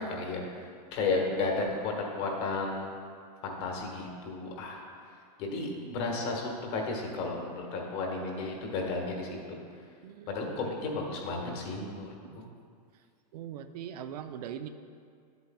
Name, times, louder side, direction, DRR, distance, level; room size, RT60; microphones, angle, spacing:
voice 1, 0.0-2.9 3.4-4.8 5.4-9.6 10.3-12.1 12.3-12.5, left 3 dB, 45° left, 0 dB, 1.5 m, -33 dB
voice 2, 13.3-14.7, right 9 dB, 70° right, 9 dB, 0.5 m, -41 dB
10.5 x 8.0 x 2.3 m, 2.2 s
supercardioid pair, 145°, 21 cm